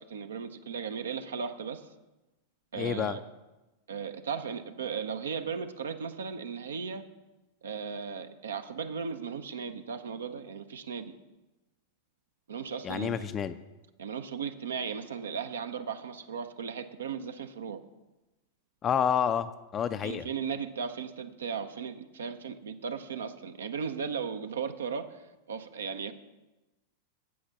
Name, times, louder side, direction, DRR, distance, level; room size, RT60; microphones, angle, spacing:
voice 1, 0.0-1.9 2.7-3.2 3.9-7.0 7.6-11.1 12.5-13.3 14.0-17.8 20.0-25.2 25.5-26.1, right 6 dB, 70° right, 9 dB, 0.6 m, -36 dB
voice 2, 2.8-3.2 12.8-13.6 18.8-20.3, left 8 dB, 25° left, 11 dB, 0.4 m, -29 dB
8.5 x 8.0 x 5.8 m, 1.1 s
figure-of-eight pair, 90°, 0 cm